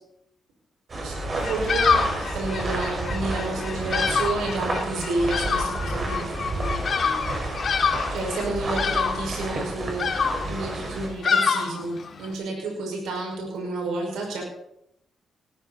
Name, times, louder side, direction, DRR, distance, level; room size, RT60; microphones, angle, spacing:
sound 1, 0.9-11.1, right 2 dB, 40° right, 5.3 m, -31 dB
voice 1, 1.0-6.8 8.1-14.4, right 3 dB, 90° right, 0 dB, 5.7 m, -30 dB
Bird vocalization bird call bird song, 1.4-12.3, left 5 dB, 55° left, 2.4 m, -27 dB
18.5 x 14.5 x 4.3 m, 0.78 s
cardioid pair, 80°, 0 cm